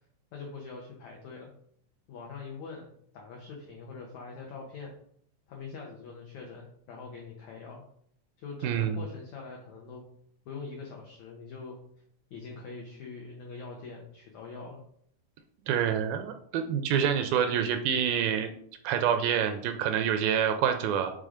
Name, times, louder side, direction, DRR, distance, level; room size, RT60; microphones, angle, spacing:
voice 1, 0.3-1.5 2.1-4.9 5.5-7.8 8.4-10.0 10.4-11.8 12.3-14.8, left 4 dB, 80° left, 0 dB, 1.6 m, -43 dB
voice 2, 8.6-9.0 15.7-18.5 18.8-21.1, right 8 dB, 80° right, 7 dB, 2.1 m, -27 dB
6.6 x 3.7 x 4.9 m, 0.67 s
omnidirectional pair, 4.5 m